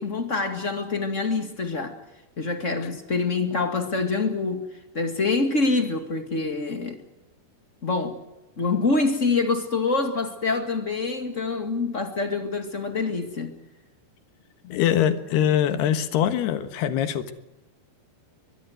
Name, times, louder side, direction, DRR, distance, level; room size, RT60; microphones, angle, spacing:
voice 1, 0.0-2.0 2.4-4.6 4.9-7.0 7.8-8.2 8.6-13.5, left 3 dB, 30° left, 1.4 m, -25 dB
voice 2, 14.6-17.3, left 10 dB, 80° left, 3.5 m, -23 dB
22.5 x 21.5 x 8.0 m
omnidirectional pair, 4.6 m